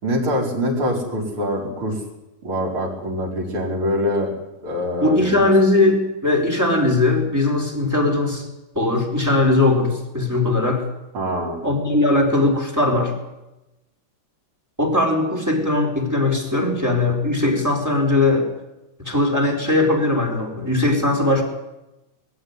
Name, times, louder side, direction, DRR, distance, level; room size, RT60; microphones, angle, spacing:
voice 1, 0.0-2.0 2.4-4.3 4.6-5.4 11.1-11.6, equal, 35° right, -1 dB, 5.3 m, -24 dB
voice 2, 5.0-8.5 8.8-10.8 11.6-13.1 14.8-18.5 19.0-21.4, left 2 dB, 5° right, 3 dB, 3.8 m, -19 dB
21.5 x 15.5 x 9.6 m, 0.97 s
omnidirectional pair, 4.0 m